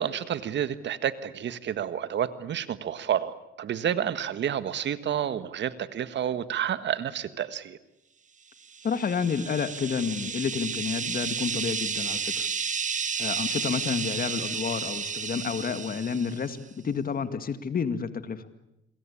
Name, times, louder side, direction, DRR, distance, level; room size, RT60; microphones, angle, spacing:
voice 1, 0.0-7.8, right 9 dB, 65° right, 13 dB, 1.6 m, -30 dB
sound 1, 8.7-16.5, right 6 dB, 40° right, 1.3 m, -32 dB
voice 2, 8.8-12.5 13.2-18.4, left 6 dB, 45° left, 11 dB, 2.2 m, -30 dB
27.0 x 22.0 x 8.6 m, 0.88 s
cardioid pair, 90°, 20 cm